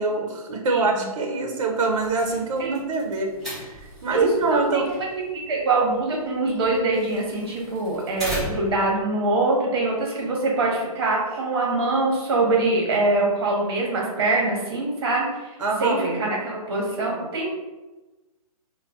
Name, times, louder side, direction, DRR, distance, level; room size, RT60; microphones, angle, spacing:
voice 1, 0.0-3.3 3.8-4.9 15.6-16.2, right 3 dB, 60° right, 2 dB, 0.6 m, -25 dB
sound 1, 1.9-8.9, equal, ahead, 0.7 m, -38 dB
voice 2, 4.1-4.9 5.3-17.5, right 2 dB, 40° right, -1 dB, 0.9 m, -24 dB
2.5 x 2.1 x 3.5 m, 1.1 s
hypercardioid pair, 165°, 19 cm